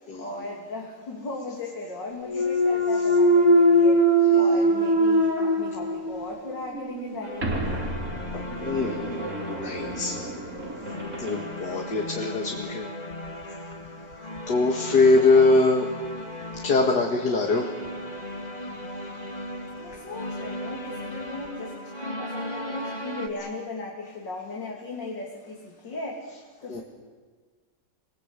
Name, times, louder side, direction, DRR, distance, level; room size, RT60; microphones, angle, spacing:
voice 1, 0.2-4.0 4.3-7.9 14.9-15.4 19.8-26.8, left 2 dB, 85° left, -2 dB, 4.0 m, -37 dB
Thump thud, 2.2-6.3 6.7-11.4, right 1 dB, 50° right, 3.5 m, -23 dB
sound 1, 7.2-23.3, left 1 dB, 25° left, 2.6 m, -37 dB
voice 2, 8.6-9.2 9.6-10.2 11.2-12.8 14.5-15.9 16.6-17.7 26.7-26.8, left 3 dB, 65° left, 2 dB, 2.8 m, -22 dB
29.5 x 21.0 x 8.4 m, 1.4 s
omnidirectional pair, 1.9 m